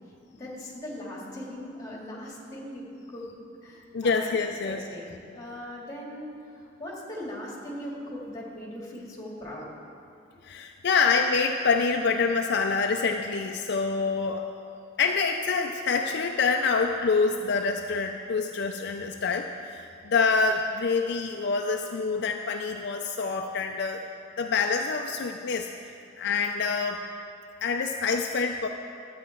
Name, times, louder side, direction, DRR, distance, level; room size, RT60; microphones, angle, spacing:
voice 1, 0.3-3.3 3.6-4.3 4.6-9.7, left 1 dB, 20° left, -4 dB, 2.2 m, -39 dB
voice 2, 3.9-4.8 10.4-14.5 15.0-24.0 24.4-25.7 26.2-27.0 27.6-28.7, left 4 dB, 60° left, 4 dB, 0.5 m, -26 dB
12.5 x 8.7 x 4.5 m, 2.6 s
head